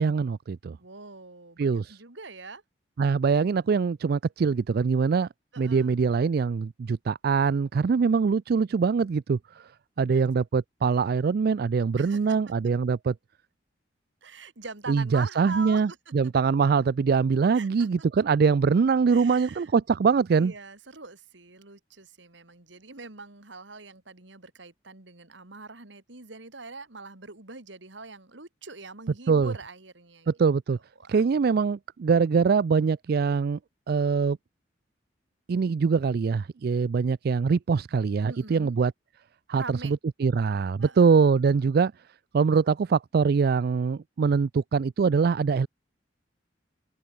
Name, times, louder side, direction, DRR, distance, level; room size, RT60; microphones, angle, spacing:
voice 1, 0.0-0.8 1.6-2.0 3.0-5.3 5.6-9.7 10.0-13.1 14.9-20.5 29.3-29.5 30.3-30.8 31.1-33.6 33.9-34.4 35.5-38.9 39.5-41.9 42.3-45.7, right 5 dB, 55° right, 0.4 m, -23 dB
voice 2, 0.8-2.6 5.5-6.0 7.8-8.3 10.0-10.3 12.0-12.5 14.2-16.3 17.5-18.1 19.1-19.7 20.3-30.3 31.0-31.2 38.3-38.7 39.5-39.9 40.8-41.3, right 3 dB, 80° right, 2.7 m, -43 dB
head